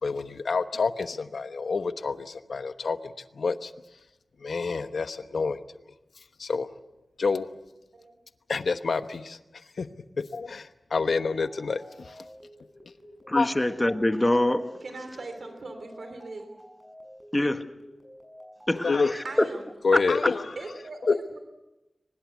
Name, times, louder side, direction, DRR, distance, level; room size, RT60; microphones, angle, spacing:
voice 1, 0.0-3.7 4.4-5.6 6.4-6.7 7.2-7.5 8.5-9.4 9.8-9.9 10.3-12.1 13.3-13.5 18.8-19.1 19.8-20.4 21.1-21.2, left 4 dB, 85° left, 1.0 m, -27 dB
sound 1, 11.1-19.7, equal, 15° right, 6.6 m, -51 dB
voice 2, 13.3-14.7 17.3-17.6 18.7-19.2 19.9-20.3, left 1 dB, 20° left, 1.4 m, -25 dB
voice 3, 14.8-16.5 19.2-19.6 20.5-21.4, right 2 dB, 75° right, 3.2 m, -40 dB
23.5 x 20.5 x 8.2 m
wide cardioid pair, 75°, 0 cm